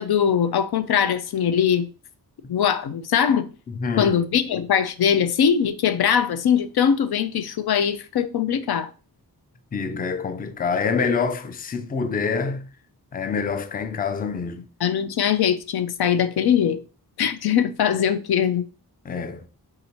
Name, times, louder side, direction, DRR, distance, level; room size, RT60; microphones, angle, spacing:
voice 1, 0.0-1.9 2.5-3.5 4.0-8.9 14.8-16.8 17.2-18.7, left 8 dB, 85° left, 0.5 m, -21 dB
voice 2, 3.7-4.1 9.7-12.7 13.1-14.7 19.1-19.5, left 5 dB, 25° left, 0.4 m, -26 dB
3.7 x 2.8 x 4.3 m
wide cardioid pair, 120°, 37 cm